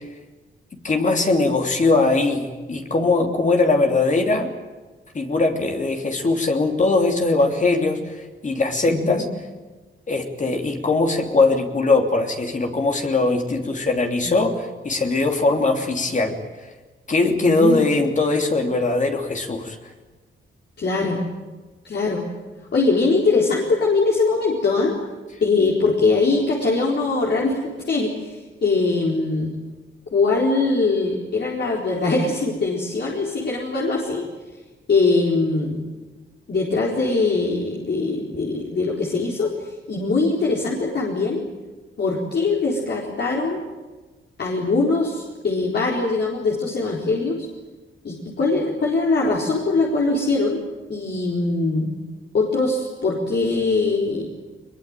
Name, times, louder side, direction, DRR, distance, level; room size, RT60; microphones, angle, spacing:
voice 1, 0.8-4.5 5.1-9.2 10.1-16.4 17.1-19.8, left 3 dB, 35° left, 3 dB, 3.0 m, -20 dB
voice 2, 8.9-9.2 14.2-14.3 17.4-17.8 20.8-21.2 21.8-22.2 22.7-25.0 25.4-29.5 30.1-34.3 34.9-35.8 36.5-41.4 42.0-43.6 44.4-47.5 48.0-50.6 50.9-51.9 52.3-54.3, left 3 dB, 55° left, -2 dB, 4.3 m, -22 dB
22.5 x 22.0 x 9.0 m, 1.3 s
wide cardioid pair, 115°, 21 cm